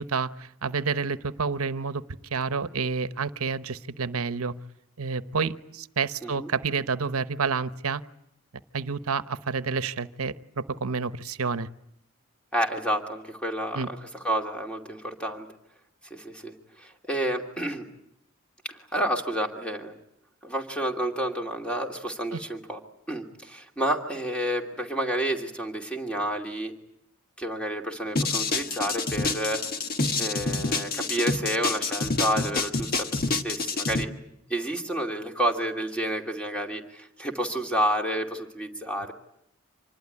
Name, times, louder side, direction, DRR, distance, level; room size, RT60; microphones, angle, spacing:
voice 1, 0.0-2.0 2.3-4.5 5.0-8.0 8.7-11.7 13.7-13.9 22.3-22.4, right 5 dB, 90° right, 13 dB, 0.9 m, -29 dB
voice 2, 12.5-14.0 14.2-15.5 16.1-17.9 18.6-20.0 20.4-22.8 23.1-26.7 27.4-29.6 30.2-34.1 34.5-39.1, right 1 dB, 5° left, 3 dB, 2.6 m, -30 dB
sound 1, 28.2-34.0, left 3 dB, 45° left, 1.4 m, -27 dB
26.5 x 20.5 x 10.0 m, 0.78 s
head